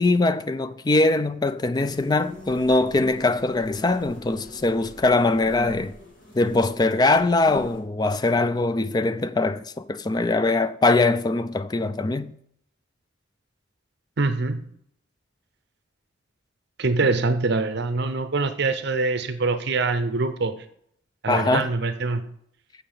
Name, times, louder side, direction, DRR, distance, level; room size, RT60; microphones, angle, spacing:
voice 1, 0.0-5.9 6.4-12.3 21.3-21.7, left 2 dB, 20° left, 0.3 m, -22 dB
sound 1, 1.8-7.8, left 1 dB, 45° left, 2.3 m, -42 dB
voice 2, 14.2-14.6 16.8-20.5 21.2-22.2, right 3 dB, 60° right, 0.6 m, -24 dB
6.6 x 5.7 x 6.8 m
head